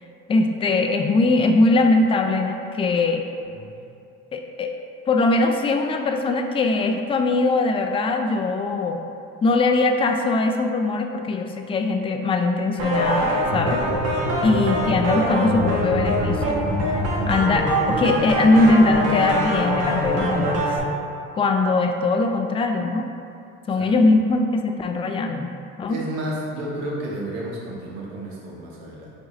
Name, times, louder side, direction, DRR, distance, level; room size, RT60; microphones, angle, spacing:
voice 1, 0.3-3.2 4.3-4.7 5.1-9.0 9.4-13.8 14.4-16.5 17.3-20.7 21.3-23.0 23.7-26.0, left 3 dB, 20° left, 4 dB, 0.3 m, -21 dB
sound 1, 12.8-20.8, equal, 50° right, 1.2 m, -23 dB
voice 2, 14.2-14.6 23.8-23.9 25.9-29.1, right 1 dB, 80° right, -4 dB, 0.9 m, -32 dB
4.6 x 2.7 x 3.1 m, 2.6 s
hypercardioid pair, 70°, 31 cm